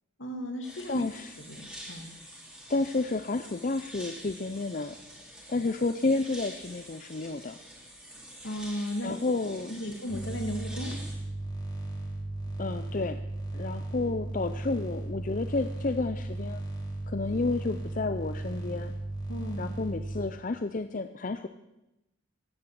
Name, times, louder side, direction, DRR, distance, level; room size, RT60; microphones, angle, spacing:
voice 1, 0.2-1.0 1.4-2.1 8.4-9.2 9.7-11.0 19.3-19.7, equal, 70° left, 5 dB, 2.4 m, -35 dB
sound 1, 0.6-11.1, equal, 5° right, 3.1 m, -47 dB
voice 2, 0.9-1.3 2.7-5.0 5.5-7.6 9.0-9.7 12.6-13.2 13.5-16.6 17.1-18.9 19.6-21.5, left 3 dB, 40° left, 9 dB, 0.5 m, -31 dB
sound 2, 10.1-20.2, right 2 dB, 20° left, 3.0 m, -36 dB
16.0 x 11.0 x 7.6 m, 0.95 s
head